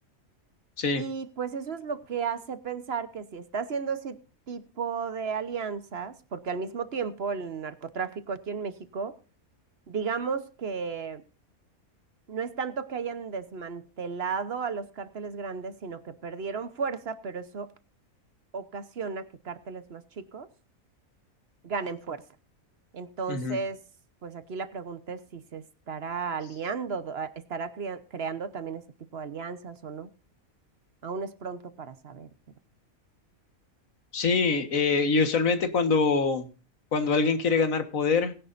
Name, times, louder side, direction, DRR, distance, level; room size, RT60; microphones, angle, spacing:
voice 1, 1.0-4.2 4.5-9.1 9.9-11.2 12.3-17.7 18.5-20.5 21.6-22.2 22.9-23.8 24.2-28.8 29.1-30.1 31.0-32.3, right 5 dB, 50° right, 12 dB, 1.2 m, -34 dB
voice 2, 34.1-36.5 36.9-38.3, left 4 dB, 70° left, 9 dB, 1.9 m, -24 dB
19.0 x 10.5 x 2.6 m, 0.34 s
omnidirectional pair, 1.4 m